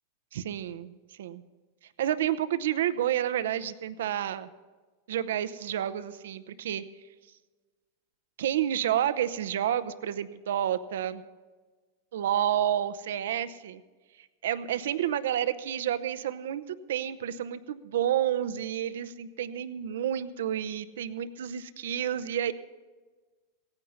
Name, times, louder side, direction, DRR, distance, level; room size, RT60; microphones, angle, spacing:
voice 1, 0.3-1.4 2.0-4.5 5.1-6.8 8.4-11.2 12.1-13.8 14.4-22.5, right 10 dB, 80° right, 13 dB, 0.7 m, -30 dB
17.0 x 9.7 x 5.5 m, 1.3 s
hypercardioid pair, 115°, 0 cm